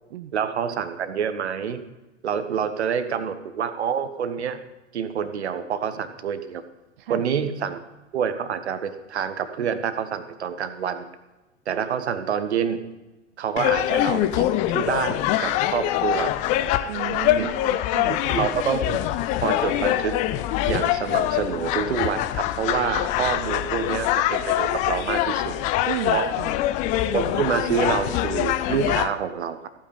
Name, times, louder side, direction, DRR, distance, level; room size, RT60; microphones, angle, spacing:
voice 1, 0.3-1.8 2.2-4.6 4.9-6.6 7.1-7.8 8.1-11.1 11.7-12.8 13.4-16.3 17.3-17.5 18.1-19.0 19.4-20.2 20.7-25.5 26.1-26.3 27.1-29.7, right 7 dB, 65° right, 11 dB, 1.2 m, -27 dB
sound 1, 13.6-29.1, left 13 dB, 20° left, 0.4 m, -24 dB
voice 2, 16.9-18.2 25.9-26.6, right 14 dB, 50° right, 11 dB, 0.5 m, -33 dB
15.0 x 8.8 x 5.4 m, 1.1 s
figure-of-eight pair, 100°, 36 cm